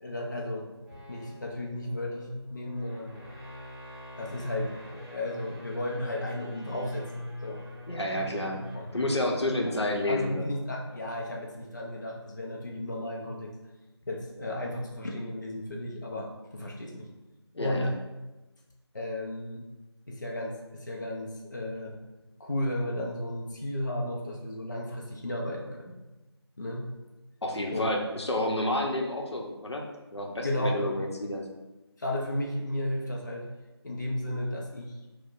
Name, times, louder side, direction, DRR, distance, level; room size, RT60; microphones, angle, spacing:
voice 1, 0.0-0.7 1.1-3.2 4.2-7.6 8.7-9.4 9.7-9.8 10.1-13.5 14.0-17.1 17.6-17.9 18.9-19.7 20.1-22.0 22.4-26.0 26.6-26.9 27.7-28.0 30.4-30.9 32.0-33.5 33.8-35.0, left 1 dB, 45° left, -1 dB, 0.4 m, -34 dB
sound 1, 0.7-9.2, left 1 dB, 20° left, 1.3 m, -43 dB
voice 2, 7.9-8.6 8.9-10.4 17.5-17.9 27.4-29.9 30.1-31.4, left 1 dB, 75° left, 1 dB, 0.7 m, -30 dB
4.4 x 2.0 x 2.4 m, 1.1 s
figure-of-eight pair, 170°, 14 cm